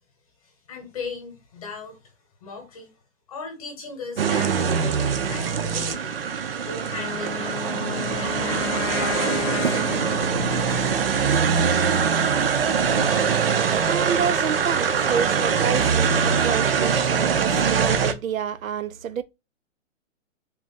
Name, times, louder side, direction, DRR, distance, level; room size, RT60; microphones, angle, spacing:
voice 1, 0.4-2.1 2.4-3.0 3.3-6.2 6.6-7.6 8.2-8.7 9.0-10.9, left 4 dB, 25° left, 1.0 m, -38 dB
sound 1, 4.2-18.1, right 6 dB, 45° right, 0.6 m, -23 dB
Wind instrument woodwind instrument, 6.9-11.1, left 11 dB, 70° left, 0.5 m, -33 dB
sound 2, 8.0-16.8, right 1 dB, 5° left, 0.5 m, -37 dB
voice 2, 13.8-19.2, right 8 dB, 85° right, 0.7 m, -28 dB
3.7 x 2.3 x 4.1 m
hypercardioid pair, 170°, 40 cm